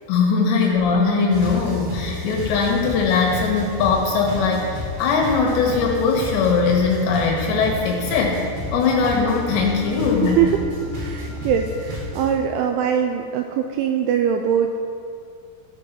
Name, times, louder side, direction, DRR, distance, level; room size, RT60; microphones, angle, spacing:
voice 1, 0.1-8.4 8.7-10.4, left 4 dB, 70° left, -1 dB, 3.0 m, -20 dB
sound 1, 1.3-12.3, left 1 dB, 65° right, 4.0 m, -31 dB
voice 2, 10.2-10.6 11.0-14.8, right 8 dB, 85° right, 5 dB, 2.7 m, -22 dB
14.5 x 5.4 x 5.8 m, 2.4 s
omnidirectional pair, 5.8 m